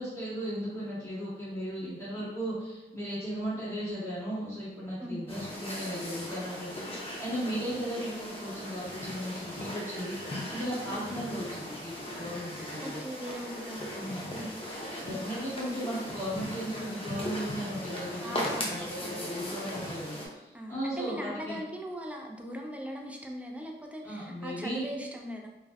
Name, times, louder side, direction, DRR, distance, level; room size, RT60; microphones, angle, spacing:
voice 1, 0.0-13.0 13.9-14.2 14.8-21.6 24.0-24.8, equal, 15° left, -9 dB, 1.2 m, -36 dB
sound 1, 5.3-20.3, left 1 dB, 30° left, 0.7 m, -38 dB
voice 2, 12.6-14.6 18.2-19.6 20.5-25.5, equal, 5° right, 1 dB, 0.4 m, -40 dB
2.4 x 2.1 x 2.3 m, 1.0 s
cardioid pair, 50°, 19 cm